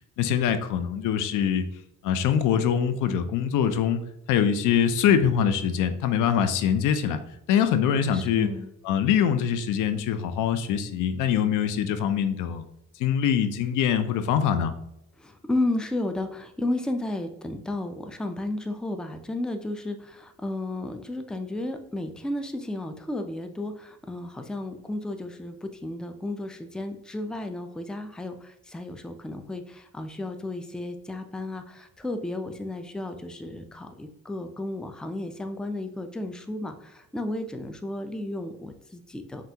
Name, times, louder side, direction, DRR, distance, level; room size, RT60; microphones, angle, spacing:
voice 1, 0.2-1.7 2.0-4.0 4.3-7.2 7.5-8.5 8.8-12.7 13.0-14.7, left 8 dB, 90° left, 10 dB, 0.5 m, -23 dB
voice 2, 8.1-8.7 15.2-39.4, left 1 dB, 5° left, 7 dB, 0.4 m, -33 dB
5.6 x 2.5 x 2.8 m, 0.81 s
cardioid pair, 90°, 30 cm